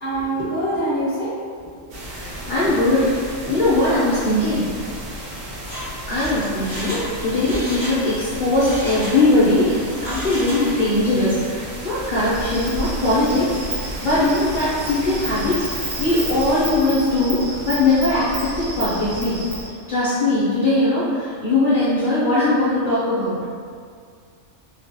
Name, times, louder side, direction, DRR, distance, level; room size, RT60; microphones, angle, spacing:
voice 1, 0.0-1.3 1.8-1.9 2.4-2.5 2.9-3.0 3.4-3.5, right 1 dB, 10° left, -13 dB, 0.9 m, -25 dB
sound 1, 1.9-16.7, right 1 dB, 65° right, 0.8 m, -34 dB
voice 2, 2.1-3.1 3.5-4.6 6.1-13.5 14.0-19.4 19.9-23.4, left 2 dB, 50° left, -11 dB, 0.6 m, -20 dB
Mechanisms, 5.7-8.0 8.3-9.5 9.9-11.0 11.3-11.4, equal, 30° right, 0.4 m, -33 dB
Insect, 12.3-19.7, right 2 dB, 80° right, 1.1 m, -31 dB
2.3 x 2.1 x 2.7 m, 2.1 s
omnidirectional pair, 1.3 m